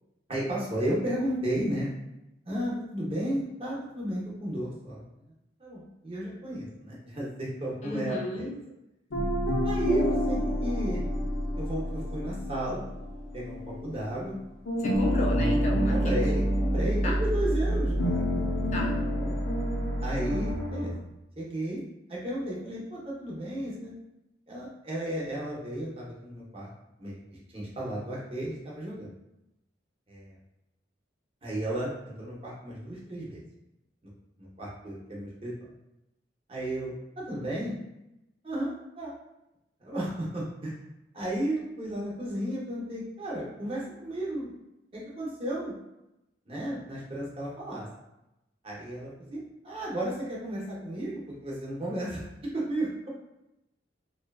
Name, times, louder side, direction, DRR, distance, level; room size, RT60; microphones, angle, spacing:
voice 1, 0.3-1.9 2.4-5.0 5.6-8.5 9.6-11.0 11.5-12.8 13.3-14.4 15.9-18.7 19.2-19.4 20.0-20.9 21.4-21.8 22.1-23.9 24.5-26.7 27.0-27.2 27.5-29.1 30.1-30.3 31.4-33.4 34.4-35.5 36.5-37.7 38.4-39.1 39.8-40.7 41.1-44.5 44.9-45.7 46.5-47.9 48.6-52.2 52.5-53.1, right 1 dB, 30° right, -5 dB, 0.6 m, -33 dB
voice 2, 7.8-8.5 14.8-16.2 17.0-17.2 18.7-19.0, left 1 dB, 40° left, -1 dB, 0.3 m, -34 dB
sound 1, 9.1-14.4 14.7-20.9, equal, 85° left, 0.6 m, -28 dB
2.6 x 2.2 x 2.2 m, 0.90 s
head